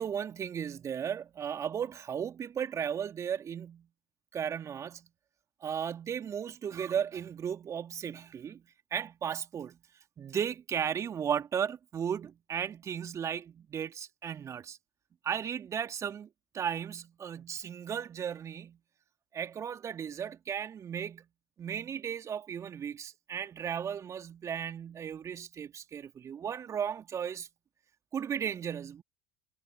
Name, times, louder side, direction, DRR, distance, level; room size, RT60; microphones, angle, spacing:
voice 1, 0.0-3.9 4.3-5.1 5.6-8.7 8.9-9.8 10.2-14.8 15.2-16.3 16.5-18.8 19.3-21.3 21.6-27.5 28.1-29.0, right 8 dB, 35° right, 2.5 m, -35 dB
figure-of-eight pair, 70°, 9 cm